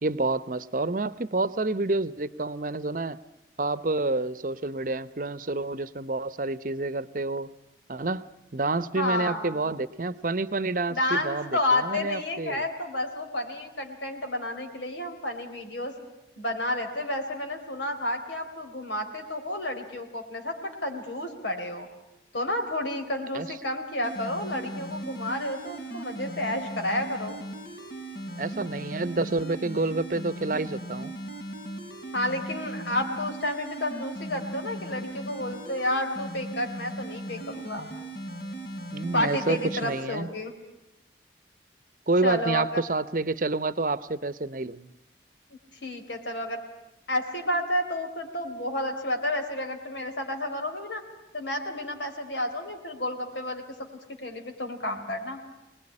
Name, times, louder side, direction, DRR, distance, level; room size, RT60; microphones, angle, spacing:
voice 1, 0.0-3.2 3.6-7.5 7.9-8.2 8.5-12.6 23.3-23.5 28.4-31.1 38.9-40.3 42.1-44.9, right 2 dB, 45° right, 16 dB, 0.8 m, -28 dB
voice 2, 9.0-9.7 10.9-15.9 16.4-21.9 22.3-27.3 32.1-37.9 39.1-40.5 42.2-42.8 45.8-46.6 47.1-51.0 51.3-53.6 54.2-55.4, left 1 dB, 80° left, 4 dB, 3.8 m, -30 dB
sound 1, 24.0-40.0, right 1 dB, 65° left, 4.7 m, -38 dB
25.0 x 20.0 x 9.8 m, 0.98 s
head